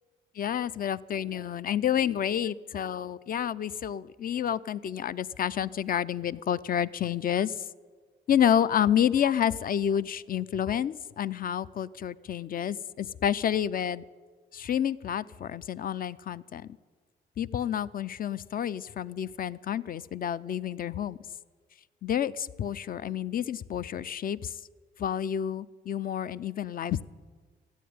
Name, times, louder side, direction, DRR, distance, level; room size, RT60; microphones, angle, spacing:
voice 1, 0.4-7.5 8.3-14.0 14.5-16.7 17.4-21.2 22.0-24.5 25.0-27.1, left 9 dB, 45° left, 16 dB, 0.5 m, -29 dB
14.0 x 9.3 x 9.5 m, 1.5 s
cardioid pair, 90°, 20 cm